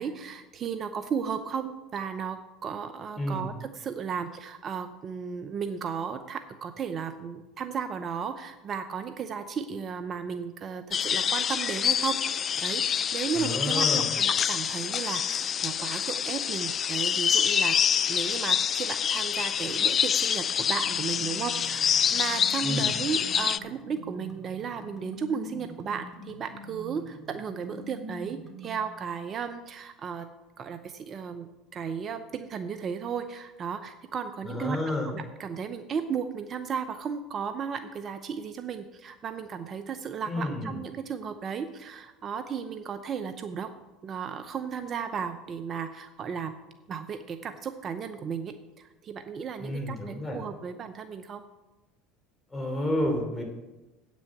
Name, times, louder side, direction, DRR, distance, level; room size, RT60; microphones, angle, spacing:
voice 1, 0.0-12.2 12.6-17.8 18.1-30.3 30.6-34.8 35.1-43.7 44.0-46.5 46.9-51.4, right 6 dB, 40° right, 9 dB, 0.7 m, -34 dB
voice 2, 3.2-3.5 13.3-14.1 22.6-22.9 34.4-35.1 40.3-40.8 49.6-50.4 52.5-53.4, left 1 dB, 15° left, 2 dB, 3.2 m, -30 dB
sound 1, 10.9-23.6, left 8 dB, 40° left, 0.3 m, -26 dB
sound 2, 20.8-28.8, equal, ahead, 2.9 m, -44 dB
8.7 x 6.3 x 7.8 m, 1.1 s
supercardioid pair, 90°, 0 cm